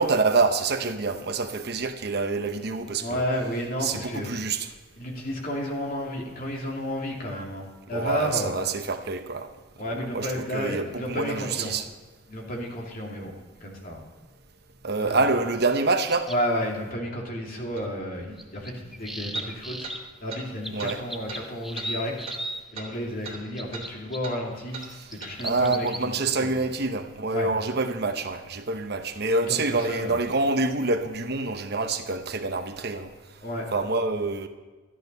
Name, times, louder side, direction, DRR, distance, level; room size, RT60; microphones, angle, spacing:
voice 1, 0.0-3.2 3.8-4.7 7.9-9.5 9.9-11.8 14.8-16.3 20.7-21.0 24.9-25.1 25.4-33.1 33.7-34.5, right 3 dB, 55° right, 7 dB, 1.0 m, -26 dB
voice 2, 3.0-4.4 5.0-8.5 9.8-11.7 12.3-13.3 13.6-14.0 15.0-15.2 16.3-19.9 20.2-22.1 22.7-24.8 25.1-26.1 26.4-26.5 27.3-27.5 29.5-30.2 33.4-33.7, equal, 50° left, -1 dB, 2.7 m, -31 dB
sound 1, 16.1-16.4 18.4-20.0 20.6-22.6 23.3-24.2 24.8-26.0, equal, ahead, 0.7 m, -35 dB
sound 2, 17.8-17.9 19.3-19.5 19.8-20.0 20.3-20.4 20.8-20.9 21.3-21.4 21.8-21.9 22.3-22.4 22.7-22.9 23.2-23.4 23.7-23.9 24.2-24.4 24.7-24.9 25.2-25.3, right 4 dB, 30° right, 2.8 m, -39 dB
13.0 x 10.5 x 5.4 m, 1.3 s
head